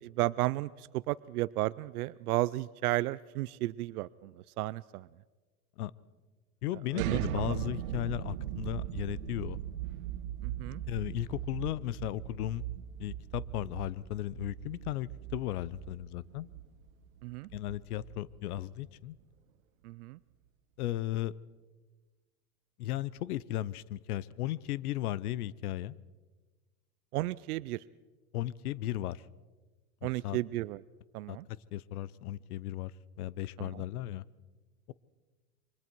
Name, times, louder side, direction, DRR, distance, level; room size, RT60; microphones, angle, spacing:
voice 1, 0.0-5.1 6.9-7.2 7.5-7.6 10.4-10.8 17.2-17.5 19.8-20.2 27.1-27.8 30.0-30.8 31.1-31.5 33.6-33.9, right 18 dB, 85° right, 17 dB, 0.6 m, -33 dB
voice 2, 6.6-9.6 10.9-12.6 13.0-16.5 17.5-19.2 20.8-21.3 22.8-26.0 28.3-29.2 30.0-30.4 31.3-32.9 33.2-34.2, left 14 dB, 85° left, 20 dB, 0.8 m, -36 dB
sound 1, 6.9-18.8, right 12 dB, 65° right, 1.1 m, -39 dB
28.0 x 24.5 x 4.6 m, 1.3 s
supercardioid pair, 160°, 43 cm